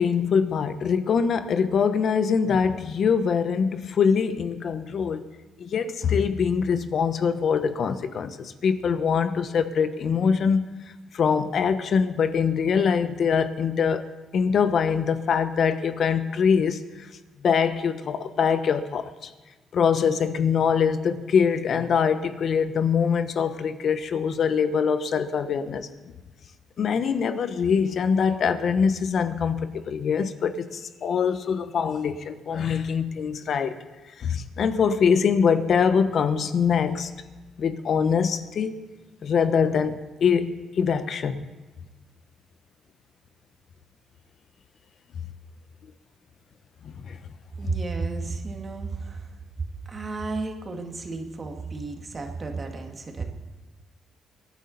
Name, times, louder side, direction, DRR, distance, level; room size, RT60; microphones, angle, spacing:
voice 1, 0.0-5.2 5.6-10.6 11.1-14.1 14.3-17.1 17.4-19.3 19.7-25.9 26.8-33.8 34.2-37.1 37.6-38.8 39.2-41.5 46.8-47.2, left 6 dB, 60° left, 1.0 m, -23 dB
voice 2, 47.6-49.3 49.8-53.2, right 3 dB, 35° right, 2.0 m, -33 dB
24.0 x 9.6 x 4.1 m
cardioid pair, 90°, 0 cm